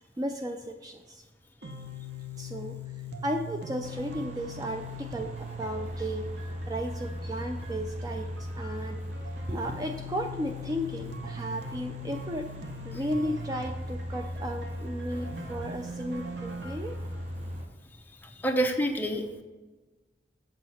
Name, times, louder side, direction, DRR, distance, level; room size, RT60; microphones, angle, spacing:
voice 1, 0.2-1.2 2.4-2.8 3.2-6.3 6.7-9.0 9.5-12.5 12.8-17.0, equal, 20° right, 5 dB, 0.4 m, -34 dB
sound 1, 1.6-17.6, left 1 dB, 70° right, 0.9 m, -38 dB
sound 2, 3.8-17.7, right 1 dB, 40° right, 0.8 m, -47 dB
voice 2, 18.4-19.4, right 1 dB, 10° left, 3 dB, 0.7 m, -27 dB
7.7 x 6.3 x 4.3 m, 1.2 s
head